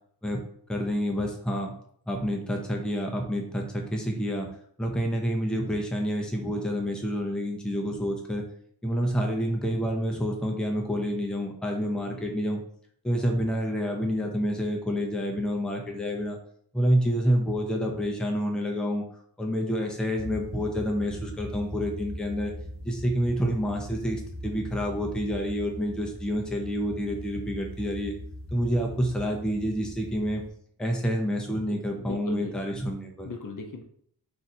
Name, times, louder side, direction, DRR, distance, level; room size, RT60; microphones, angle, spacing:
voice 1, 0.7-1.7 2.1-4.5 4.8-8.4 8.8-12.6 13.0-16.4 16.7-19.0 19.4-22.5 22.8-28.1 28.5-30.4 30.8-33.3, equal, ahead, 1 dB, 0.5 m, -28 dB
sound 1, 20.1-30.5, equal, 30° right, 0.8 m, -40 dB
voice 2, 31.7-32.5 33.2-33.8, left 3 dB, 50° left, 3 dB, 0.5 m, -38 dB
2.7 x 2.4 x 4.1 m, 0.64 s
wide cardioid pair, 75°, 42 cm